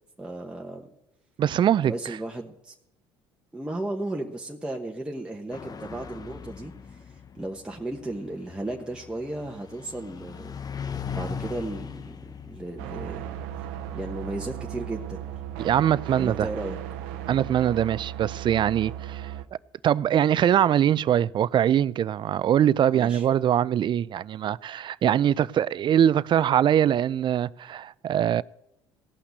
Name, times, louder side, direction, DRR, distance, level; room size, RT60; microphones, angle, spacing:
voice 1, 0.2-0.9 1.8-2.7 3.5-13.4 13.9-15.3 16.2-16.8 22.9-23.2, right 2 dB, 10° right, 1.2 m, -35 dB
voice 2, 1.4-1.9 15.6-16.5 17.3-19.3 19.8-28.4, right 10 dB, 45° right, 0.4 m, -22 dB
sound 1, 5.5-16.5, left 6 dB, 35° left, 0.8 m, -40 dB
sound 2, 12.8-19.4, right 11 dB, 80° right, 0.7 m, -36 dB
16.5 x 5.8 x 8.2 m
supercardioid pair, 70°, 11 cm